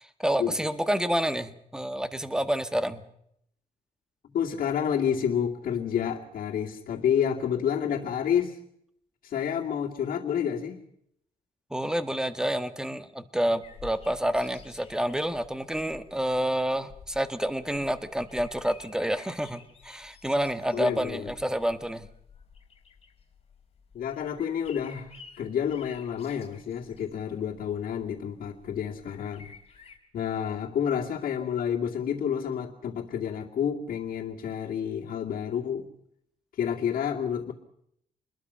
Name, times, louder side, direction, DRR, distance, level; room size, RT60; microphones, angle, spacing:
voice 1, 0.0-3.0 11.7-22.1, equal, 5° right, 11 dB, 1.3 m, -29 dB
voice 2, 4.2-8.6 9.2-10.8 20.7-21.3 23.9-29.5 30.1-35.9 36.6-37.5, left 8 dB, 75° left, -2 dB, 2.5 m, -29 dB
sound 1, 13.6-30.0, left 6 dB, 45° left, 4.1 m, -52 dB
27.0 x 21.5 x 5.7 m, 0.72 s
cardioid pair, 125°, 15 cm